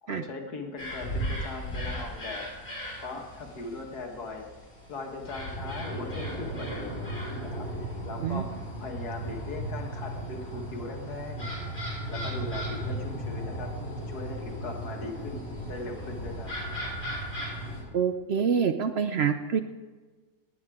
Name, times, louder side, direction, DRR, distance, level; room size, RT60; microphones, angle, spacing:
voice 1, 0.0-4.5 4.9-7.1 7.4-11.5 12.1-13.7 14.0-16.5, left 3 dB, 70° left, 2 dB, 2.1 m, -39 dB
sound 1, 0.8-17.8, right 1 dB, 40° left, 5.8 m, -36 dB
voice 2, 17.9-19.6, right 7 dB, 65° right, 8 dB, 0.6 m, -26 dB
19.0 x 8.8 x 4.9 m, 1.3 s
omnidirectional pair, 1.7 m